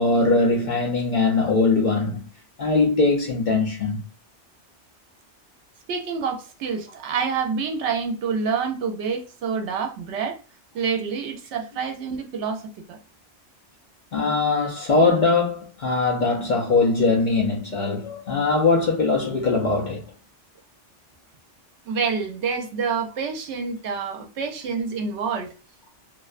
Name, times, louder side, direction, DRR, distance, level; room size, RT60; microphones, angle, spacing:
voice 1, 0.0-2.2 2.6-4.0 14.1-20.1, left 3 dB, 55° left, 0.5 m, -21 dB
voice 2, 5.9-10.4 10.7-13.0 21.9-25.5, right 5 dB, 75° right, 0.9 m, -27 dB
2.5 x 2.1 x 2.4 m
omnidirectional pair, 1.2 m